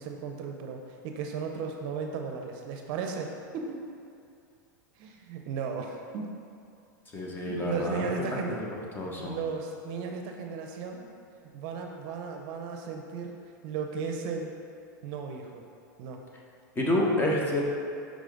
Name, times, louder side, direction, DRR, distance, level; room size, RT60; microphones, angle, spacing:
voice 1, 0.0-3.8 5.0-6.4 7.5-8.6 9.2-11.1 11.5-13.4 13.6-14.5 15.0-15.6 16.0-16.2, right 5 dB, 50° right, 3 dB, 0.6 m, -35 dB
voice 2, 7.1-8.0 8.5-8.6 8.9-9.4 16.8-17.6, left 1 dB, 20° left, -2 dB, 1.0 m, -28 dB
5.1 x 4.9 x 3.9 m, 2.5 s
hypercardioid pair, 120°, 10 cm